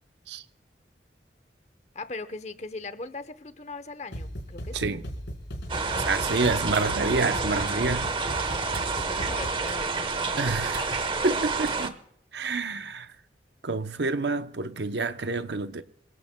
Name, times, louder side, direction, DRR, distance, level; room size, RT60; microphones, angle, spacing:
voice 1, 1.9-4.9 6.0-6.3 8.3-10.6, left 3 dB, 40° left, 0.9 m, -40 dB
sound 1, 4.1-9.7, equal, 85° left, 4.4 m, -37 dB
sound 2, 5.7-11.9, right 4 dB, 30° right, 1.1 m, -29 dB
voice 2, 6.0-8.5 10.4-12.0 12.3-13.1 13.6-15.8, right 3 dB, 75° right, 0.8 m, -28 dB
Tick-tock, 6.4-11.7, right 2 dB, 60° right, 2.3 m, -45 dB
27.5 x 16.5 x 2.3 m
head